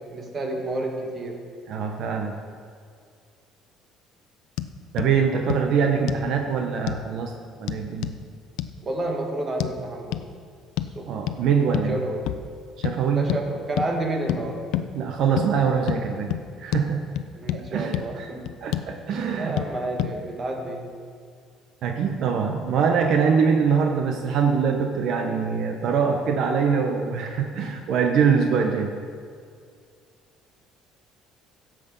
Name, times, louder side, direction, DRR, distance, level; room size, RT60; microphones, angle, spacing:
voice 1, 0.0-1.4 5.3-5.5 8.8-10.2 10.9-11.1 11.9-12.3 13.1-14.8 17.3-18.4 19.3-20.9, right 2 dB, 25° right, 2 dB, 1.6 m, -30 dB
voice 2, 1.7-2.4 4.9-7.3 7.6-8.2 11.1-12.0 12.8-13.3 14.9-17.1 17.5-18.3 18.6-19.6 21.8-29.0, right 6 dB, 60° right, 3 dB, 0.9 m, -23 dB
sound 1, 4.6-4.7 5.0-5.1 5.5-5.6 6.1-6.3 6.9-7.0 7.7-8.2 8.6-8.7 9.6-9.7 10.1-10.3 10.8-10.9 11.3-11.4 11.7-11.9 12.3-12.5 12.8-13.0 13.3-13.4 13.8-13.9 14.3-14.4 14.7-14.9 15.4-15.5 15.9-16.0 16.3-16.4 16.7-16.9 17.2-17.6 17.9-18.0 18.5-18.9 19.6-19.7 20.0-20.1, left 13 dB, 80° left, 0.6 m, -27 dB
15.5 x 7.7 x 5.5 m, 2.2 s
cardioid pair, 145°, 0 cm